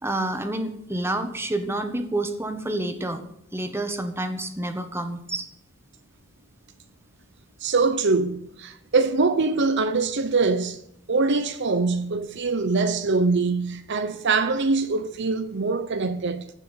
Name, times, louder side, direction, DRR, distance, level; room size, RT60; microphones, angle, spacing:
voice 1, 0.0-3.2 3.5-5.5, right 1 dB, 10° right, 1.4 m, -28 dB
voice 2, 7.6-10.8 11.1-16.5, right 3 dB, 60° right, 0.8 m, -23 dB
15.5 x 6.0 x 8.9 m
head